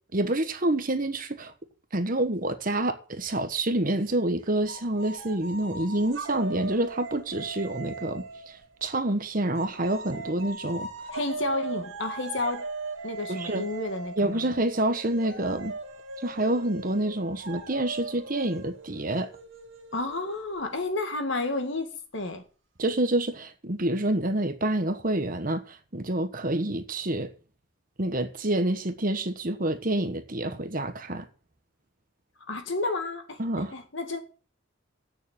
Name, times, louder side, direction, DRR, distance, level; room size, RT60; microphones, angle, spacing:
voice 1, 0.1-1.5 1.9-10.9 13.3-13.7 14.2-15.7 16.2-19.3 22.8-27.3 28.0-31.3 33.4-33.7, right 1 dB, 40° right, 1.2 m, -28 dB
sound 1, 4.7-9.0 9.6-20.9, right 3 dB, 65° right, 2.7 m, -39 dB
voice 2, 11.1-12.7 13.0-14.4 19.9-22.4 32.5-33.4 33.7-34.2, left 2 dB, 60° left, 2.1 m, -31 dB
9.3 x 7.0 x 9.0 m
head